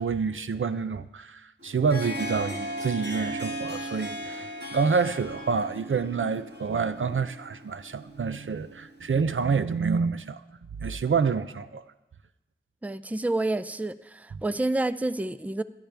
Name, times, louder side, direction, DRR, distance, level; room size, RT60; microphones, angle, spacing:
voice 1, 0.0-10.4 10.8-11.9, right 5 dB, 80° right, 0.5 m, -28 dB
Harp, 1.6-9.4, equal, 55° right, 1.6 m, -37 dB
voice 2, 12.8-15.6, right 2 dB, 5° right, 0.4 m, -29 dB
17.5 x 12.5 x 3.4 m
wide cardioid pair, 45°, 20 cm